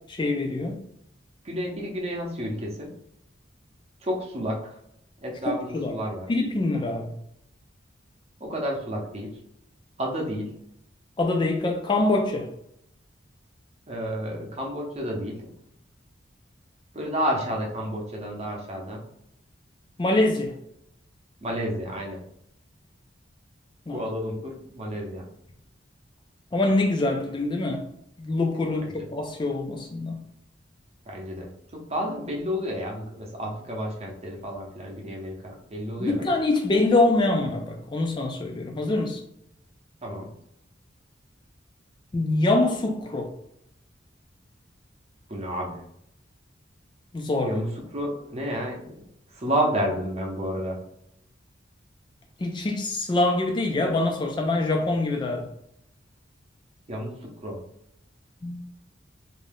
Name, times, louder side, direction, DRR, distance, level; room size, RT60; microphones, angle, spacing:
voice 1, 0.1-0.8 5.5-5.9 6.3-7.1 11.2-12.5 20.0-20.5 23.9-24.0 26.5-27.8 28.2-30.3 36.0-39.2 42.1-43.3 47.1-47.6 52.4-55.5 58.4-58.6, left 2 dB, 25° left, 0.3 m, -24 dB
voice 2, 1.4-2.9 4.0-4.7 5.2-6.3 8.4-9.4 10.0-10.5 13.9-15.5 16.9-19.0 21.4-22.2 23.9-25.3 28.9-29.1 31.1-36.3 40.0-40.3 45.3-45.8 47.4-49.0 49.3-50.8 56.9-57.6, equal, 35° right, 0.7 m, -31 dB
2.6 x 2.3 x 3.3 m
head